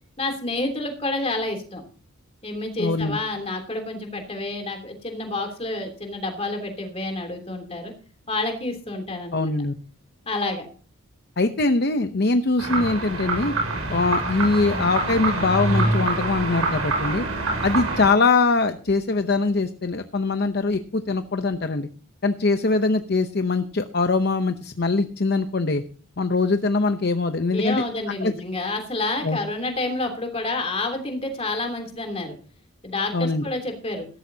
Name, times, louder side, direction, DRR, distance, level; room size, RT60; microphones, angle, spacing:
voice 1, 0.2-1.8 2.4-7.9 8.3-9.5 10.2-10.7 27.5-32.3 32.8-34.1, left 2 dB, 30° left, 4 dB, 3.1 m, -29 dB
voice 2, 2.8-3.2 9.3-9.7 11.4-13.5 13.9-17.2 17.6-21.9 22.2-25.8 26.2-27.8 28.2-28.3 29.2-29.4 33.1-33.4, left 3 dB, 50° left, 8 dB, 0.7 m, -22 dB
sound 1, 12.6-18.1, right 2 dB, 80° right, 6.8 m, -25 dB
16.0 x 14.0 x 2.8 m, 0.40 s
head